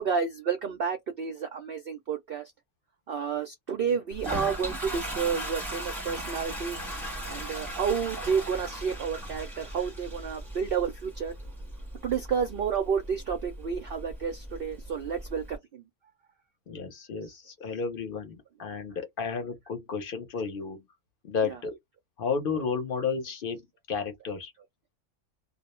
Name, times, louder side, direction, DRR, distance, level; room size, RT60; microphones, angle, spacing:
voice 1, 0.0-2.4 3.1-6.8 7.3-11.3 12.0-15.8 21.4-21.6, right 6 dB, 65° right, 0.6 m, -30 dB
Toilet flush, 4.1-15.6, right 1 dB, ahead, 0.9 m, -38 dB
voice 2, 16.7-20.8 21.2-21.7 22.2-24.5, left 5 dB, 50° left, 0.7 m, -32 dB
2.3 x 2.0 x 2.9 m
omnidirectional pair, 1.4 m